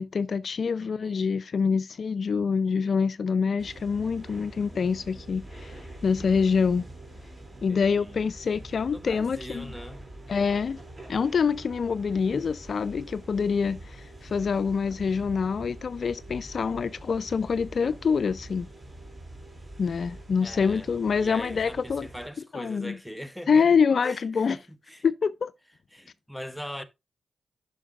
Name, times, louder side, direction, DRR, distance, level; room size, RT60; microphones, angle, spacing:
voice 1, 0.0-6.8 7.6-9.7 10.3-10.8 11.1-18.7 19.8-22.1 22.5-23.0 23.5-24.6 25.0-25.5, left 5 dB, 65° left, 0.3 m, -26 dB
voice 2, 0.8-1.2 7.7-8.3 8.9-10.0 20.4-20.9 21.2-23.7 24.0-24.6 24.9-25.0 25.9-26.8, equal, ahead, 0.8 m, -40 dB
sound 1, 3.6-22.3, right 1 dB, 30° right, 2.5 m, -45 dB
11.0 x 5.8 x 2.4 m
cardioid pair, 55°, 0 cm